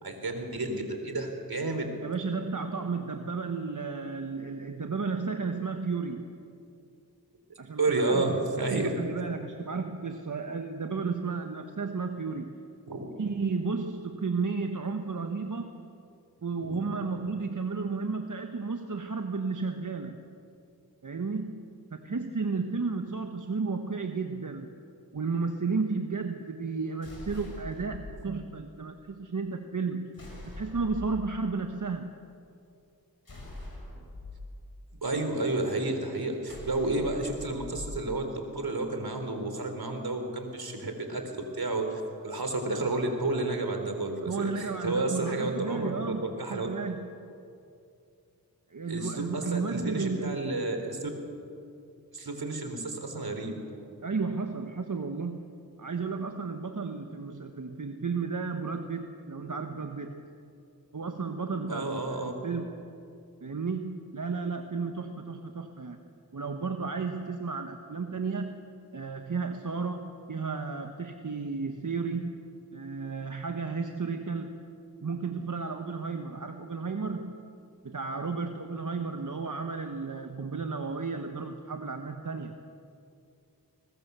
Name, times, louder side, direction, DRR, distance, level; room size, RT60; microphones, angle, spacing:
voice 1, 0.0-1.8 7.8-8.9 12.9-13.0 16.6-17.3 34.9-41.2 41.5-46.7 48.9-51.1 52.1-53.5 61.7-62.3, right 2 dB, 70° right, 5 dB, 3.7 m, -31 dB
voice 2, 2.0-6.3 7.6-8.2 8.6-12.5 13.2-15.8 16.4-20.2 21.0-24.7 25.1-32.1 44.2-47.1 48.7-50.5 54.0-60.2 60.9-62.9 63.4-66.0 66.3-72.4 72.7-74.6 75.0-77.4 77.8-82.5, right 4 dB, 50° right, 5 dB, 1.3 m, -33 dB
sound 1, 27.0-28.1 30.1-31.2 33.3-34.3 36.5-37.9, left 1 dB, 65° left, 6.6 m, -43 dB
21.5 x 20.5 x 6.9 m, 2.5 s
cardioid pair, 45°, 38 cm